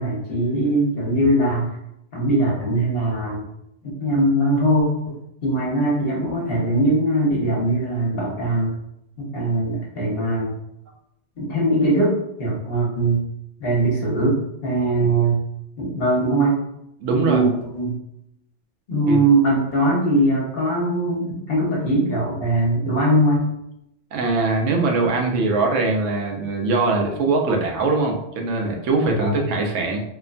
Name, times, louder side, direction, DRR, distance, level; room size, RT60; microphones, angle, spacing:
voice 1, 0.0-1.7 2.1-3.4 3.8-5.2 5.4-8.7 9.2-10.5 11.4-13.2 13.6-15.4 15.8-16.6 17.1-18.0 18.9-23.5 29.0-29.4, right 1 dB, 55° left, -4 dB, 1.1 m, -21 dB
voice 2, 17.0-17.4 19.0-19.2 24.1-30.0, right 3 dB, 90° right, 1 dB, 0.9 m, -22 dB
2.9 x 2.1 x 2.5 m, 0.80 s
omnidirectional pair, 1.2 m